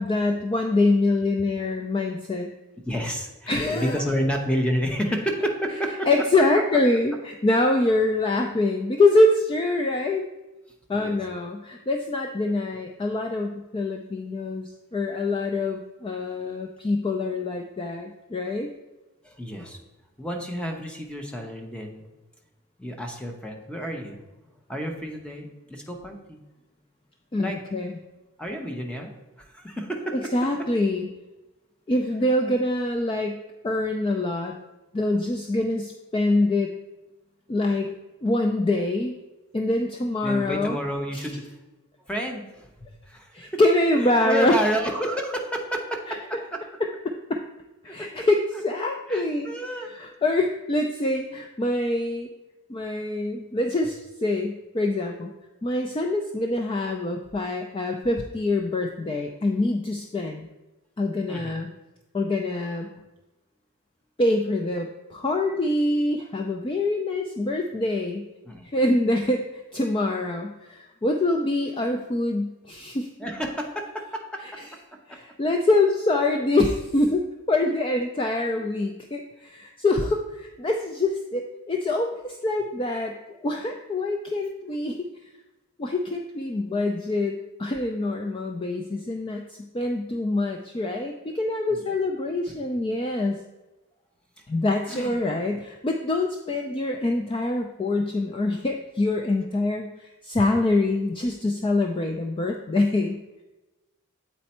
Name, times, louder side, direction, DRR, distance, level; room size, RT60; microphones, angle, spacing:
voice 1, 0.0-2.5 3.5-4.0 6.1-10.3 10.9-18.7 27.3-28.0 30.3-31.1 31.9-33.4 33.6-34.5 34.9-36.7 37.5-37.9 38.2-39.1 39.5-40.8 43.3-44.5 46.1-46.2 47.1-47.4 47.8-48.4 48.6-49.5 49.9-52.3 52.7-55.3 55.6-60.5 61.0-61.7 62.1-62.9 64.2-68.3 68.7-73.1 75.1-83.1 83.4-85.1 85.8-93.4 94.5-103.2, left 2 dB, 25° left, 3 dB, 0.3 m, -25 dB
voice 2, 2.8-6.1 10.9-11.2 19.2-19.8 20.2-22.0 22.8-24.2 24.7-26.4 27.4-27.6 28.4-29.1 29.4-30.2 40.2-41.6 42.1-43.6 44.2-46.6 47.8-48.3 48.5-48.6 49.1-49.9 61.3-61.6 68.5-68.7 73.2-74.6 75.1-75.2 78.5-78.7 91.7-92.0 92.5-92.6 94.9-95.2, equal, 5° left, 2 dB, 0.7 m, -30 dB
8.1 x 4.3 x 4.2 m, 1.1 s
head